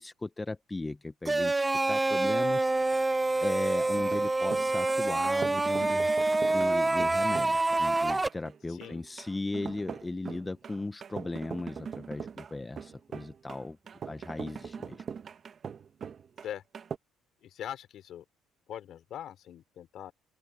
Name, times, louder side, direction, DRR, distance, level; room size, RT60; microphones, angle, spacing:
voice 1, 0.0-6.1 6.5-13.8 14.0-15.0, left 2 dB, 15° left, 1.0 m, -37 dB
sound 1, 1.2-8.3, right 2 dB, 15° right, 0.7 m, -27 dB
sound 2, 3.9-17.0, right 7 dB, 40° right, 1.4 m, -42 dB
voice 2, 8.7-9.0 16.4-16.6 17.4-18.2 18.7-20.1, left 10 dB, 55° left, 4.2 m, -41 dB
open air
cardioid pair, 125°, 0 cm